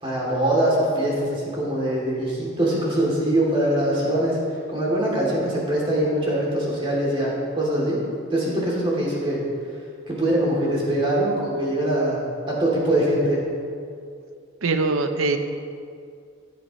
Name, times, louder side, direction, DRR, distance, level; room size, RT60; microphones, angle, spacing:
voice 1, 0.0-4.4 4.7-8.0 8.3-9.4 10.1-12.2 12.5-13.4, right 1 dB, 25° right, -5 dB, 2.9 m, -23 dB
voice 2, 14.6-15.4, right 3 dB, 85° right, 7 dB, 0.7 m, -22 dB
15.0 x 8.6 x 3.2 m, 2.3 s
head